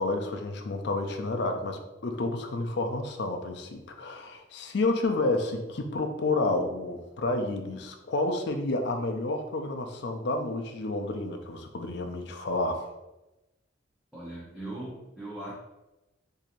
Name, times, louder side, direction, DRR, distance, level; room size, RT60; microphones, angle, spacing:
voice 1, 0.0-12.9, left 2 dB, 60° left, 5 dB, 0.5 m, -30 dB
voice 2, 14.1-15.5, right 1 dB, 5° right, -9 dB, 0.7 m, -39 dB
4.6 x 2.7 x 2.5 m, 1.0 s
head